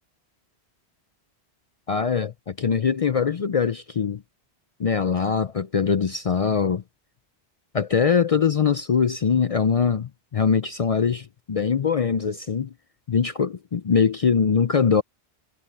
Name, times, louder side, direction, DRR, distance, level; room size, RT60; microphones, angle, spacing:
voice 1, 1.9-4.2 4.8-6.8 7.7-12.7 13.1-15.0, left 6 dB, 50° left, 0.5 m, -22 dB
omnidirectional pair, 1.1 m